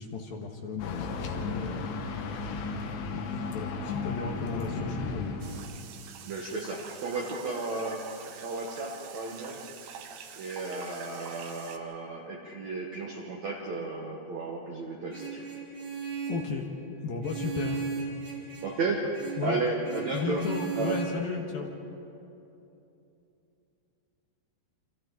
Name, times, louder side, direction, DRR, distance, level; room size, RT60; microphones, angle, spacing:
voice 1, 0.0-1.9 3.1-5.5 16.3-16.7 17.0-17.9 19.4-19.6 20.1-21.7, left 4 dB, 65° left, 1 dB, 2.8 m, -34 dB
sound 1, 0.8-5.8, left 4 dB, 90° left, 3.8 m, -35 dB
sound 2, 5.4-11.8, right 7 dB, 90° right, 3.7 m, -45 dB
voice 2, 6.2-9.7 10.4-15.5 18.6-20.5 20.8-21.0, right 3 dB, 65° right, -1 dB, 1.7 m, -33 dB
Vehicle horn car horn honking, 15.1-16.5 17.2-18.8 19.1-19.5 19.8-21.0, right 6 dB, 45° right, 5.6 m, -36 dB
29.5 x 26.0 x 4.0 m, 2.9 s
omnidirectional pair, 5.2 m